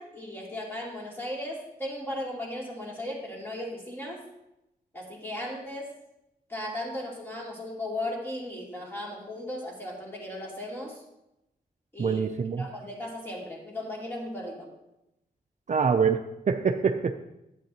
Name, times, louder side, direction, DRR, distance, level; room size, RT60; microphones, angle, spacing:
voice 1, 0.0-4.2 4.9-5.9 6.5-11.0 11.9-12.2 12.6-14.7, left 1 dB, 15° left, -3 dB, 2.7 m, -36 dB
voice 2, 12.0-12.7 15.7-17.1, right 6 dB, 45° right, 6 dB, 0.5 m, -25 dB
10.5 x 8.5 x 2.9 m, 0.88 s
wide cardioid pair, 85°, 16 cm